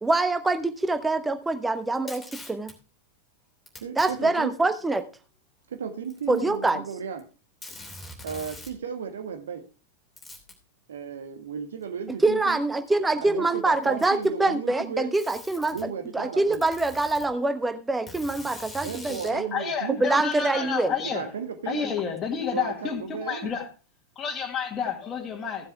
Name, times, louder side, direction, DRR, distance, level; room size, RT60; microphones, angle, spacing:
voice 1, 0.0-2.7 4.0-5.0 6.3-6.8 12.2-15.8 16.1-19.5 20.0-20.9 21.9-22.0, right 2 dB, 10° right, 1.0 m, -25 dB
Packing tape duct tape, 1.9-2.7 3.7-4.1 5.0-5.1 6.0-6.9 7.2-7.3 7.6-8.8 10.2-10.6 11.8-11.9 12.9-13.0 13.8-14.4 15.1-15.8 16.5-17.3 18.1-19.4, left 1 dB, 10° left, 3.0 m, -43 dB
voice 2, 3.8-4.5 5.7-7.2 8.2-9.6 10.9-12.6 13.2-15.1 15.7-16.6 18.8-20.0 20.5-20.7 21.1-21.8 22.5-23.5, right 6 dB, 65° right, 1.5 m, -35 dB
voice 3, 19.5-21.3 21.7-23.7 24.2-25.7, left 7 dB, 25° left, 2.0 m, -30 dB
15.0 x 7.6 x 3.4 m
figure-of-eight pair, 90°, 0 cm